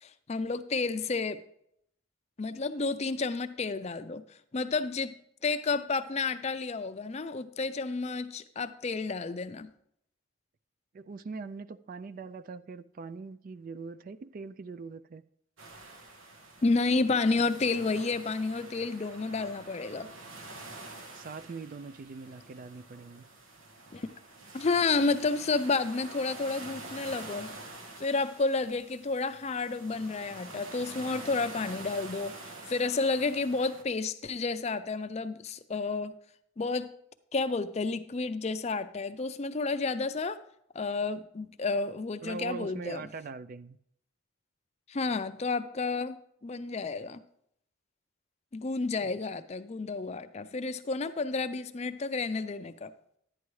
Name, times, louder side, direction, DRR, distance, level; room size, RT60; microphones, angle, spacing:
voice 1, 0.0-1.4 2.4-5.2 5.4-9.7 16.6-20.1 23.9-24.1 24.5-27.5 28.0-36.1 36.6-36.9 37.3-40.4 40.7-43.0 44.9-46.2 46.4-47.2 48.5-52.9, left 3 dB, 30° left, 0.4 m, -31 dB
voice 2, 10.9-15.2 21.1-23.3 42.2-43.8 49.0-49.1, right 4 dB, 45° right, 0.3 m, -42 dB
sound 1, 15.6-33.8, right 2 dB, 80° right, 1.3 m, -47 dB
11.0 x 9.6 x 3.1 m
head